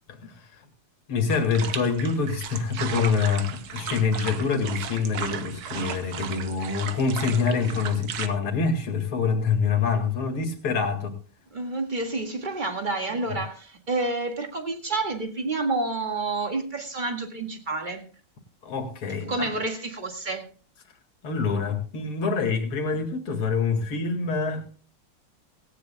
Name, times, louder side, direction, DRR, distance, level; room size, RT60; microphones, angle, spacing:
voice 1, 0.1-0.6 1.1-11.2 18.6-19.3 21.2-24.7, left 5 dB, 75° left, 2.9 m, -26 dB
sound 1, 1.3-8.3, right 8 dB, 55° right, 1.3 m, -35 dB
voice 2, 11.5-18.0 19.3-20.4, right 3 dB, 25° right, 1.9 m, -29 dB
17.5 x 17.0 x 2.2 m
omnidirectional pair, 2.4 m